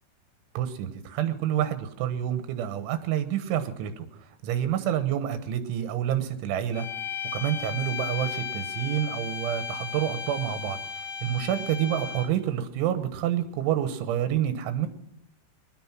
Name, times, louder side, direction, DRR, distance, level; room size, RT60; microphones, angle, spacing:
voice 1, 0.6-4.1 4.4-6.9 7.3-14.9, right 10 dB, 85° right, 10 dB, 3.6 m, -28 dB
sound 1, 6.7-12.5, left 7 dB, 60° left, 3.6 m, -35 dB
20.0 x 11.5 x 6.0 m, 0.78 s
omnidirectional pair, 5.3 m